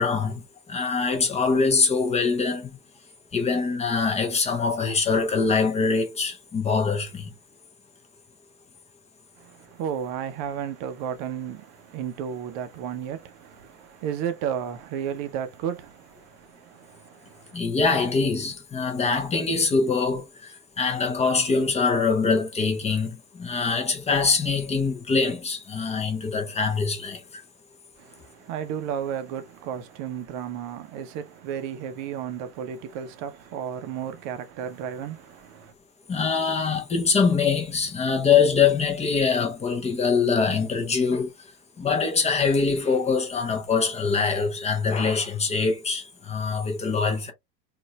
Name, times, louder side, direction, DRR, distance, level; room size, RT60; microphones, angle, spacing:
voice 1, 0.0-2.8 3.3-7.3 17.5-27.4 36.1-41.3 41.8-47.3, left 5 dB, 15° left, 0.7 m, -24 dB
voice 2, 9.4-17.6 28.0-35.7, right 8 dB, 35° right, 0.7 m, -33 dB
3.9 x 2.6 x 2.2 m
figure-of-eight pair, 85°, 50 cm